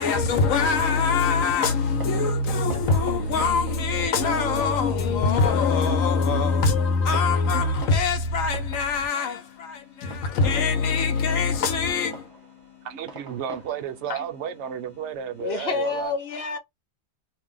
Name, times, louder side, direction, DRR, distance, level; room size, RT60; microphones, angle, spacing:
voice 1, 0.0-12.3 14.1-14.2, left 4 dB, 80° left, 1.2 m, -23 dB
sound 1, 0.6-16.1, left 12 dB, 35° left, 1.2 m, -50 dB
Fireworks, 1.8-15.9, right 3 dB, 20° right, 0.7 m, -46 dB
voice 2, 12.8-16.1, right 9 dB, 65° right, 0.8 m, -32 dB
voice 3, 15.4-16.6, left 5 dB, 55° left, 0.9 m, -28 dB
2.6 x 2.1 x 3.8 m
omnidirectional pair, 1.4 m